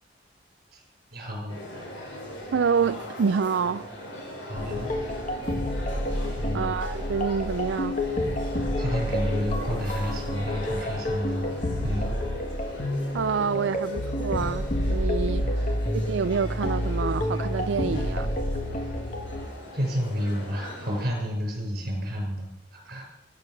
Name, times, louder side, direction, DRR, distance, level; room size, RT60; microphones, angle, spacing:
voice 1, 1.1-1.6 4.5-4.9 6.4-6.7 8.8-12.1 15.4-15.9 19.7-23.0, equal, 50° right, 6.4 m, -31 dB
sound 1, 1.5-21.1, equal, 85° left, 5.8 m, -40 dB
voice 2, 2.5-3.9 6.5-8.0 13.1-18.3, right 5 dB, 70° right, 0.4 m, -27 dB
sound 2, 4.6-19.5, left 1 dB, 40° left, 1.7 m, -29 dB
16.5 x 10.0 x 6.6 m
head